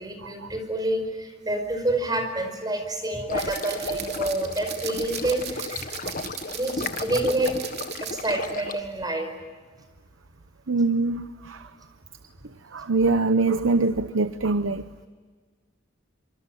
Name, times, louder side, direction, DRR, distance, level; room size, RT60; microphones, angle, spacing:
voice 1, 0.0-5.9 6.5-7.7 8.0-9.3, right 1 dB, 20° right, 6 dB, 5.1 m, -28 dB
sound 1, 3.3-8.8, left 3 dB, 45° left, 1.6 m, -34 dB
sound 2, 3.4-8.5 8.8-9.0, right 9 dB, 55° right, 2.9 m, -38 dB
voice 2, 10.7-11.6 12.7-14.8, right 3 dB, 80° right, 12 dB, 0.9 m, -23 dB
25.5 x 25.5 x 9.2 m, 1.5 s
head